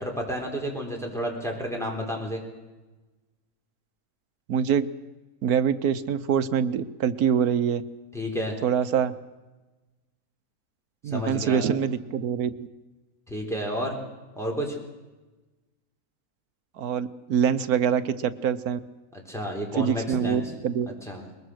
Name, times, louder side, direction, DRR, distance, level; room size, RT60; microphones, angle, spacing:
voice 1, 0.0-2.4 8.1-8.6 11.1-11.6 13.3-14.0 14.4-14.8 19.1-20.4 20.9-21.2, equal, ahead, -1 dB, 3.9 m, -31 dB
voice 2, 4.5-4.9 5.4-7.8 8.6-9.2 11.0-12.7 16.8-18.8 19.8-20.9, right 8 dB, 70° right, 12 dB, 1.4 m, -25 dB
22.0 x 21.0 x 6.4 m, 1.2 s
omnidirectional pair, 1.7 m